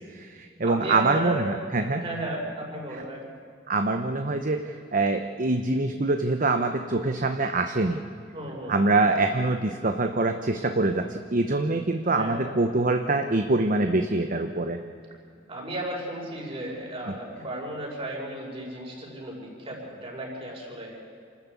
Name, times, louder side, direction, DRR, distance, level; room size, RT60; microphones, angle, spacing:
voice 1, 0.0-2.0 3.7-8.0 8.7-14.8 17.1-17.2, right 2 dB, 45° right, 6 dB, 0.9 m, -25 dB
voice 2, 0.6-1.6 2.0-3.3 8.3-8.8 12.1-12.6 15.5-21.0, right 1 dB, 30° right, -1 dB, 5.6 m, -34 dB
28.0 x 13.5 x 8.4 m, 2.4 s
head